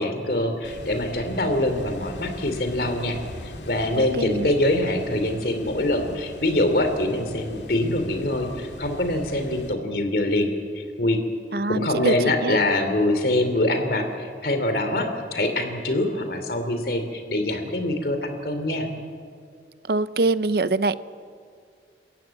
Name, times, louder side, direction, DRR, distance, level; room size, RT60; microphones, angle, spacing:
voice 1, 0.0-3.2 3.4-11.2 11.7-18.9, left 1 dB, 55° left, 7 dB, 2.8 m, -24 dB
sound 1, 0.6-9.7, left 1 dB, 90° left, 2.3 m, -40 dB
voice 2, 4.0-4.5 11.5-12.6 19.9-21.0, right 3 dB, 60° right, 15 dB, 0.6 m, -24 dB
28.5 x 15.0 x 8.9 m, 2.2 s
head